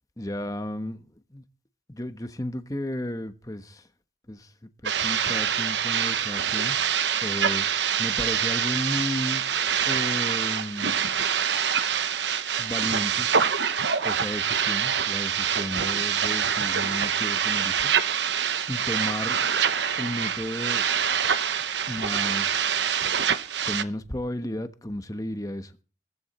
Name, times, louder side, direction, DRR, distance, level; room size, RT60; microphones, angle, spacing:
voice 1, 0.2-1.4 1.9-3.9 4.3-6.8 7.2-7.7 8.0-9.4 9.8-11.0 12.6-13.3 14.0-18.0 18.7-19.4 20.0-20.9 21.9-22.8 23.6-25.7, left 1 dB, 20° left, 1.1 m, -33 dB
sound 1, 4.8-23.8, right 8 dB, 80° right, 1.0 m, -25 dB
17.5 x 14.5 x 4.3 m
head